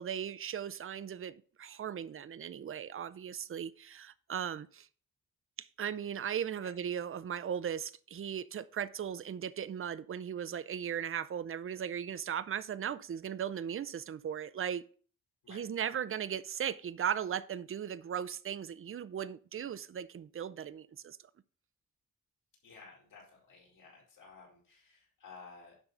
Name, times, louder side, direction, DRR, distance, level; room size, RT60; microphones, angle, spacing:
voice 1, 0.0-4.9 5.6-14.8 15.5-21.2, right 8 dB, 40° right, 0.5 m, -37 dB
voice 2, 22.6-25.8, left 4 dB, 80° left, 5.0 m, -54 dB
11.0 x 3.9 x 5.6 m
wide cardioid pair, 105°, 33 cm